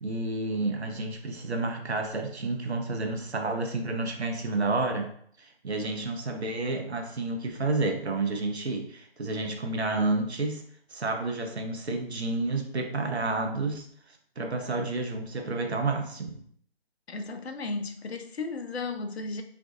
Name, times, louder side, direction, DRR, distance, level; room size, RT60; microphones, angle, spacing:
voice 1, 0.0-5.1 5.4-10.6 10.9-13.9 14.4-16.4, right 2 dB, 85° right, 4 dB, 0.6 m, -30 dB
voice 2, 17.1-19.4, left 3 dB, 80° left, 6 dB, 0.5 m, -34 dB
2.5 x 2.3 x 2.5 m, 0.62 s
figure-of-eight pair, 145°, 32 cm